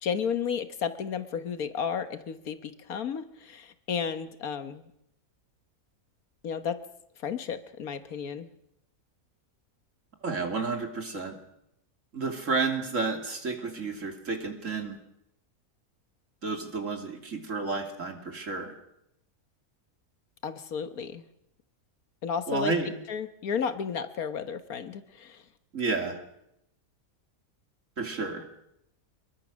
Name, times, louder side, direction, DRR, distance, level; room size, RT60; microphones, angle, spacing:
voice 1, 0.0-4.8 6.4-6.8 7.2-8.5 20.4-21.2 22.2-22.7 23.1-25.4, left 7 dB, 80° left, 11 dB, 1.7 m, -33 dB
voice 2, 10.2-11.4 12.1-15.0 16.4-18.7 22.5-22.9 25.7-26.2 28.0-28.4, right 4 dB, 60° right, 4 dB, 3.2 m, -31 dB
24.5 x 22.5 x 6.4 m, 0.80 s
omnidirectional pair, 1.5 m